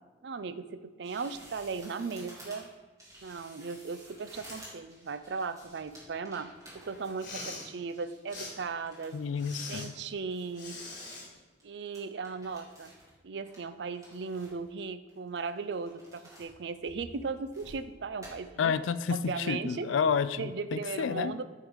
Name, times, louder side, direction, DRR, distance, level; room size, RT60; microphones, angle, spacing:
voice 1, 0.2-2.7 3.2-6.5 6.8-9.2 9.7-10.8 11.6-12.9 13.2-18.7 19.1-19.9 20.4-21.4, right 4 dB, 60° right, 12 dB, 0.4 m, -37 dB
sound 1, 1.0-10.0 10.3-11.3 11.6-11.7 11.9-13.1 13.4-14.7 15.1-16.5 16.9-17.8 18.2-18.3, right 1 dB, 20° right, 2.2 m, -53 dB
Respiratory sounds, 7.1-7.7 8.3-8.5 9.4-9.9 10.5-11.3, left 2 dB, 45° left, 1.6 m, -42 dB
voice 2, 9.1-9.9 18.6-21.3, left 6 dB, 85° left, 15 dB, 0.3 m, -30 dB
9.1 x 3.8 x 4.8 m, 1.3 s
head